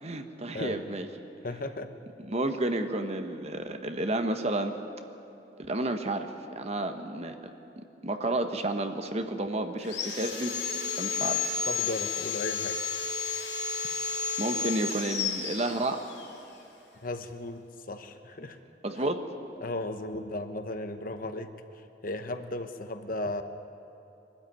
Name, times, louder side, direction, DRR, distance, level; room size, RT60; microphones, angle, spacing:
voice 1, 0.0-1.1 2.3-4.7 5.7-7.4 8.0-10.5 11.0-11.4 14.4-16.0 18.8-19.2, right 2 dB, 35° right, 6 dB, 1.2 m, -31 dB
voice 2, 1.4-1.9 11.7-12.8 17.0-18.6 19.6-21.5 21.8-23.4, left 2 dB, 50° left, 8 dB, 1.1 m, -35 dB
Sawing, 9.8-16.3, left 6 dB, 90° left, 4.3 m, -32 dB
23.0 x 13.0 x 9.4 m, 2.9 s
head